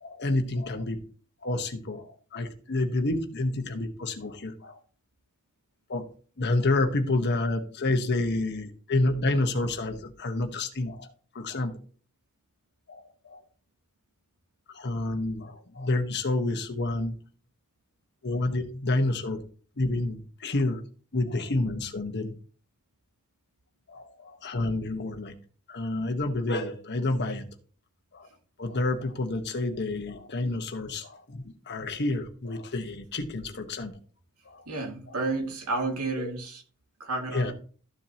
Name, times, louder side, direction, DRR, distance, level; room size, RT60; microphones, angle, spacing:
voice 1, 0.0-1.0 1.4-4.8 5.9-6.0 6.4-11.7 12.9-13.4 14.7-17.1 18.2-19.4 19.8-20.8 21.1-22.3 23.9-25.4 25.7-27.5 28.1-28.3 28.6-33.9 34.4-34.6 36.2-36.3 37.3-37.5, left 2 dB, 50° left, 6 dB, 1.2 m, -29 dB
voice 2, 34.7-36.6 37.0-37.5, right 3 dB, 80° right, 2 dB, 2.3 m, -31 dB
13.5 x 7.3 x 2.9 m, 0.41 s
head